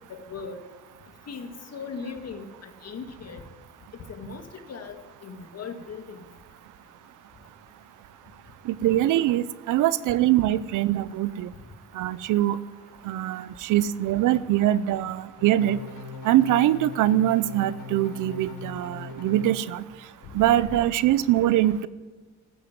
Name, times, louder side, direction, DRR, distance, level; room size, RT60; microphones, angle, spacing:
voice 1, 0.1-0.6 1.3-3.4 4.1-6.2, left 5 dB, 55° left, 6 dB, 1.9 m, -38 dB
voice 2, 8.7-11.5 11.9-12.6 13.0-15.8 16.2-19.8 20.3-21.9, right 13 dB, 85° right, 17 dB, 0.7 m, -23 dB
sound 1, 15.4-19.5 20.2-20.7, left 3 dB, 85° left, 3.6 m, -40 dB
14.0 x 9.7 x 9.5 m, 1.4 s
cardioid pair, 90°, 30 cm